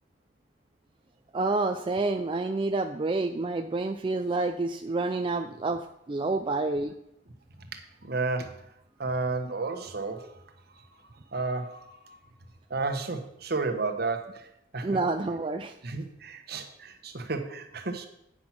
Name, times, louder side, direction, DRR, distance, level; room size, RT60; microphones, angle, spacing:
voice 1, 1.3-5.8 6.1-6.9 14.8-15.7, right 3 dB, 30° right, 6 dB, 0.4 m, -28 dB
voice 2, 7.6-8.7 9.0-12.2 12.7-15.0 15.8-18.1, right 3 dB, 55° right, 6 dB, 1.2 m, -33 dB
9.6 x 6.0 x 5.8 m, 0.78 s
head